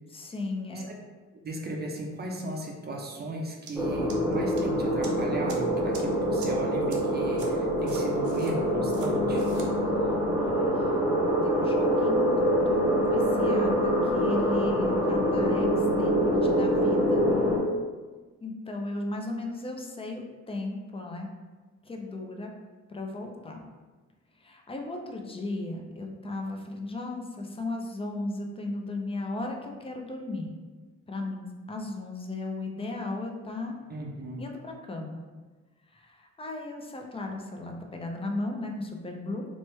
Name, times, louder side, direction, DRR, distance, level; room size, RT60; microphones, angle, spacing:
voice 1, 0.1-0.9 10.4-10.7 11.4-12.3 12.7-17.2 18.4-21.3 21.9-22.5 22.9-23.6 24.4-30.6 31.1-33.8 34.4-35.2 35.9-39.5, left 2 dB, 20° left, 2 dB, 0.4 m, -36 dB
voice 2, 1.4-9.5 33.9-34.4, right 1 dB, 35° right, 0 dB, 0.5 m, -36 dB
sound 1, 3.7-3.8 4.1-4.6 5.0-5.1 5.5-5.6 5.9-6.0 6.4-6.5 6.9-7.0 7.4-7.5 7.9-8.5 8.9-9.1 9.4-9.7, right 5 dB, 75° right, 0.6 m, -44 dB
sound 2, 3.8-17.6, equal, ahead, 0.8 m, -25 dB
3.1 x 2.1 x 3.1 m, 1.3 s
cardioid pair, 90°, 30 cm